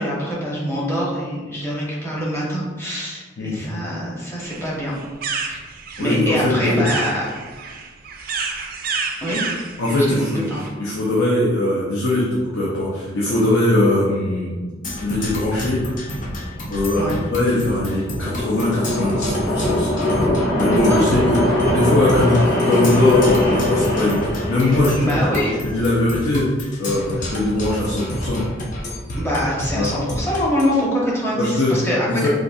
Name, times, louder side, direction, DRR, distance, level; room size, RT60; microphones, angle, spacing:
voice 1, 0.0-4.9 5.4-5.6 6.0-7.3 9.2-9.5 10.5-10.6 17.0-17.2 20.9-21.1 24.9-25.5 29.2-32.3, equal, 15° left, -6 dB, 0.8 m, -24 dB
sound 1, 4.4-10.7, right 5 dB, 50° right, 0.3 m, -30 dB
voice 2, 6.0-6.8 9.8-14.7 15.0-15.8 16.7-20.3 20.6-25.2 25.6-28.5 29.7-29.9 31.4-31.7 32.0-32.3, left 1 dB, 90° left, -6 dB, 0.6 m, -21 dB
Percussion, 14.8-30.8, equal, 40° left, 0.5 m, -30 dB
sound 2, 17.8-25.6, left 1 dB, 60° left, 1.3 m, -21 dB
3.8 x 2.5 x 2.3 m, 1.4 s
head